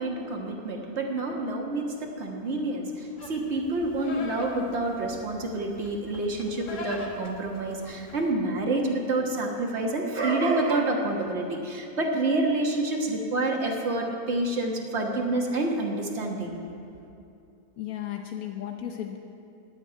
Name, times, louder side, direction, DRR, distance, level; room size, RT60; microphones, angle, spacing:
voice 1, 0.0-16.6, right 2 dB, 50° right, 0 dB, 1.7 m, -28 dB
Livestock farm animals working animals, 3.2-8.3, left 2 dB, 60° left, 1.6 m, -41 dB
voice 2, 17.8-19.2, left 11 dB, 85° left, 4 dB, 1.2 m, -34 dB
15.0 x 5.4 x 9.9 m, 2.6 s
omnidirectional pair, 1.5 m